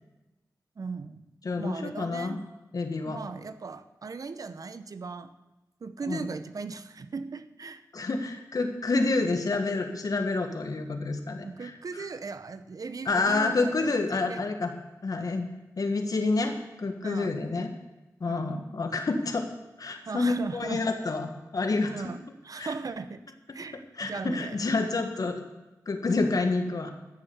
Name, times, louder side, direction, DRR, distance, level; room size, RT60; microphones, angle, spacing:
voice 1, 0.8-1.2 1.6-2.4 3.0-5.3 5.8-7.8 11.4-14.5 17.0-17.4 18.2-18.7 20.1-20.9 21.9-23.2 23.5-24.6 25.2-25.3, right 4 dB, 60° right, 12 dB, 0.8 m, -38 dB
voice 2, 1.4-2.4 2.7-3.2 6.1-6.3 7.9-12.1 13.0-14.7 15.0-15.5 15.8-17.7 18.2-19.5 19.8-22.0 22.6-22.7 24.0-25.4 25.8-26.9, left 3 dB, 60° left, 6 dB, 1.7 m, -28 dB
14.0 x 7.1 x 7.1 m, 1.0 s
cardioid pair, 50°, 7 cm